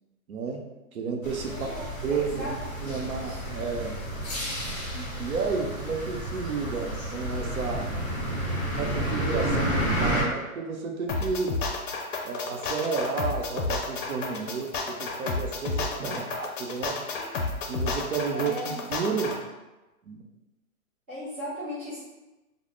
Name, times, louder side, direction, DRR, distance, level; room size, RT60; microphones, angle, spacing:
voice 1, 0.3-4.0 4.9-7.9 8.7-11.6 12.2-17.1 17.7-19.5 20.1-20.2, right 5 dB, 75° right, 2 dB, 0.6 m, -32 dB
sound 1, 1.2-10.2, equal, 25° left, 1.3 m, -31 dB
voice 2, 1.5-3.4 17.1-17.3 18.3-18.7 21.1-22.0, left 1 dB, 10° right, -16 dB, 0.4 m, -38 dB
sound 2, 11.1-19.4, left 3 dB, 60° left, 0.6 m, -31 dB
2.4 x 2.0 x 3.1 m, 1.1 s
hypercardioid pair, 145°, 43 cm